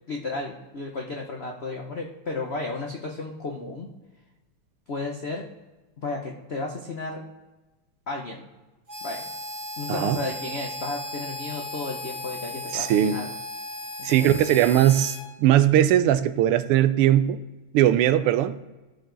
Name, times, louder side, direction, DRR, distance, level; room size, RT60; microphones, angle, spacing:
voice 1, 0.1-3.9 4.9-5.4 6.0-7.2 8.1-8.4 9.0-9.3 9.8-13.3 14.0-14.3, left 3 dB, 60° left, 1 dB, 0.6 m, -33 dB
Harmonica, 8.9-15.2, left 2 dB, 35° right, 1.6 m, -36 dB
voice 2, 12.7-13.2 14.0-17.4 17.7-18.6, right 11 dB, 85° right, 13 dB, 1.5 m, -20 dB
14.0 x 4.7 x 3.9 m, 1.1 s
omnidirectional pair, 2.4 m